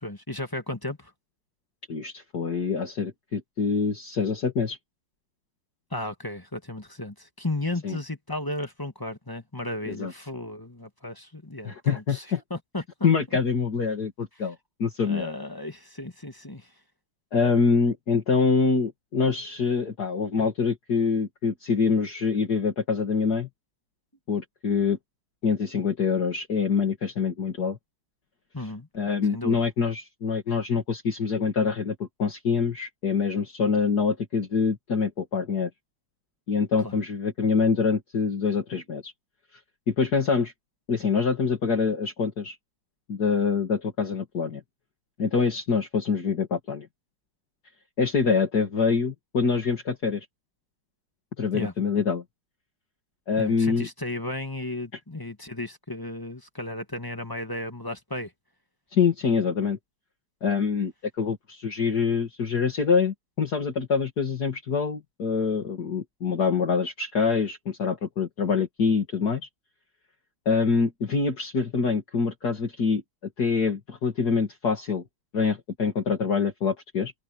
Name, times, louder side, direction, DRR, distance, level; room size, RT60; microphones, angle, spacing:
voice 1, 0.0-1.1 5.9-13.1 15.0-16.7 28.5-28.9 29.3-29.6 36.8-37.0 51.5-51.7 53.4-58.3, left 1 dB, 10° left, 1.4 m, -34 dB
voice 2, 1.9-4.8 7.8-8.0 9.9-10.1 11.6-12.4 13.0-15.3 17.3-23.5 24.3-25.0 25.4-27.8 28.9-35.7 36.5-39.1 39.9-40.5 40.9-42.6 43.1-44.6 45.2-46.9 48.0-50.3 51.4-52.2 53.3-53.9 58.9-59.8 60.4-69.4 70.5-73.0 73.4-75.0 75.3-77.1, left 5 dB, 50° left, 2.8 m, -25 dB
omnidirectional pair, 2.2 m